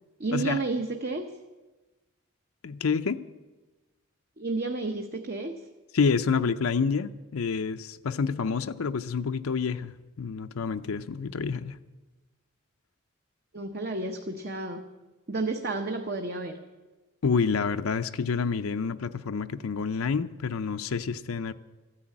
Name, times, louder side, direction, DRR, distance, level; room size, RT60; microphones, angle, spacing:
voice 1, 0.2-1.3 4.4-5.5 13.5-14.9 15.3-16.6, right 3 dB, 45° right, 4 dB, 0.8 m, -31 dB
voice 2, 2.6-3.2 5.9-11.8 17.2-21.5, left 5 dB, 85° left, 9 dB, 0.5 m, -28 dB
14.0 x 9.9 x 8.6 m, 1.2 s
head